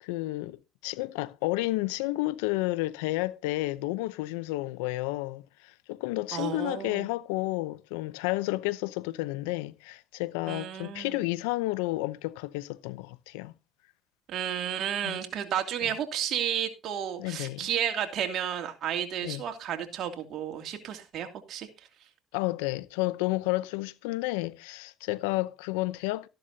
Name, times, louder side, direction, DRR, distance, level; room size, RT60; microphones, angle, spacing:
voice 1, 0.0-13.5 15.0-15.2 15.8-15.9 17.2-17.7 19.2-19.4 22.3-26.3, left 19 dB, 90° left, 0.7 m, -31 dB
voice 2, 6.3-7.1 10.5-11.2 14.3-21.7, right 9 dB, 60° right, 2.5 m, -32 dB
13.5 x 11.5 x 2.8 m
supercardioid pair, 75°, 0 cm